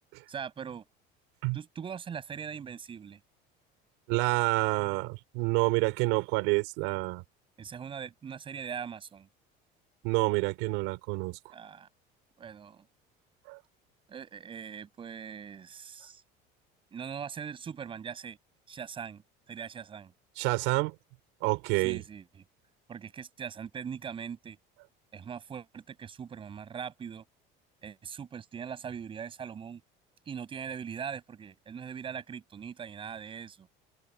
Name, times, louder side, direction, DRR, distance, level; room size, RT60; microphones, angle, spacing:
voice 1, 0.3-0.8 1.5-3.2 7.6-9.3 11.5-11.9 12.4-12.9 14.1-16.2 16.9-18.4 18.7-19.2 19.5-20.1 21.8-22.4 22.9-24.6 25.1-27.2 27.8-29.8 30.3-33.7, right 7 dB, 25° right, 7.3 m, -41 dB
voice 2, 4.1-7.2 10.0-11.4 13.5-13.6 20.4-20.9 21.4-22.0, right 25 dB, 80° right, 4.4 m, -28 dB
open air
cardioid pair, 165°, 21 cm